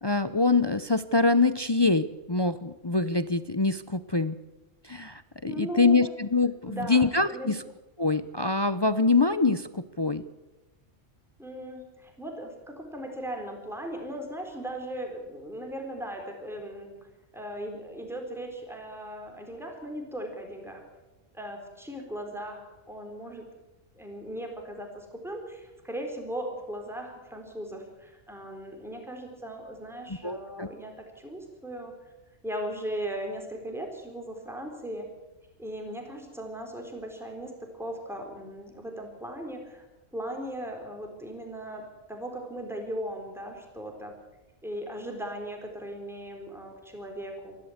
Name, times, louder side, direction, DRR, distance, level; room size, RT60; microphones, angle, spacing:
voice 1, 0.0-4.3 4.8-7.6 8.0-10.2 30.1-30.7, left 3 dB, 30° left, 12 dB, 0.5 m, -25 dB
voice 2, 5.5-6.1 6.7-7.6 11.4-16.9 17.3-20.8 21.3-23.4 24.0-31.9 32.4-35.1 35.6-39.8 40.1-44.2 44.6-47.6, right 1 dB, ahead, 2 dB, 3.9 m, -38 dB
27.5 x 12.5 x 8.0 m, 1.1 s
omnidirectional pair, 1.3 m